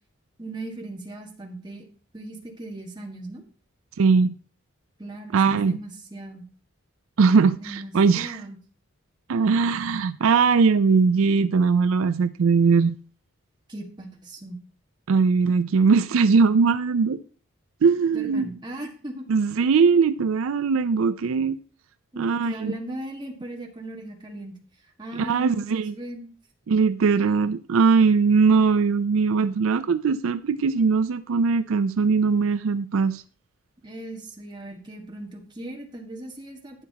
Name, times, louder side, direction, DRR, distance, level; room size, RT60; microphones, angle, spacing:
voice 1, 0.4-1.8 2.1-3.4 5.0-6.4 7.5-8.6 13.7-14.6 18.1-19.3 22.1-24.5 25.0-26.3 33.8-36.8, right 1 dB, 20° right, 1.6 m, -38 dB
voice 2, 4.0-4.4 5.3-5.8 7.2-8.4 9.3-13.0 15.1-17.2 17.8-18.5 19.3-21.6 22.2-22.8 25.2-25.9 26.7-33.2, right 5 dB, 75° right, 0.4 m, -20 dB
12.0 x 8.5 x 2.8 m
head